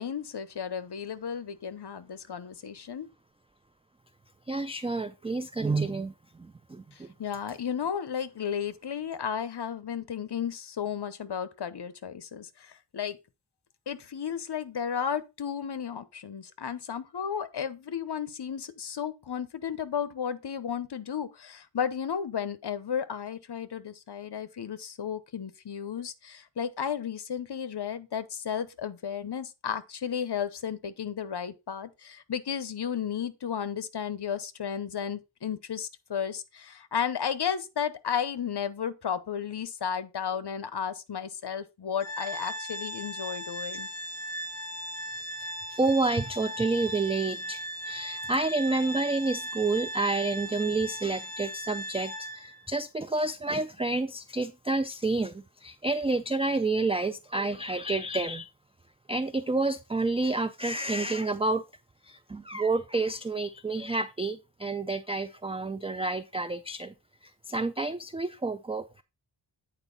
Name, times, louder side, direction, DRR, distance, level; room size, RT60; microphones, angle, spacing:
voice 1, 0.0-3.1 6.9-13.2 13.9-43.9, left 8 dB, 60° left, 0.8 m, -33 dB
voice 2, 4.5-6.1 6.7-7.1 45.7-58.5 59.1-61.6 62.1-66.9 67.5-69.0, right 3 dB, 15° right, 0.3 m, -29 dB
Organ, 42.0-52.6, equal, 35° left, 4.1 m, -38 dB
8.9 x 4.4 x 4.0 m
wide cardioid pair, 85°, 45 cm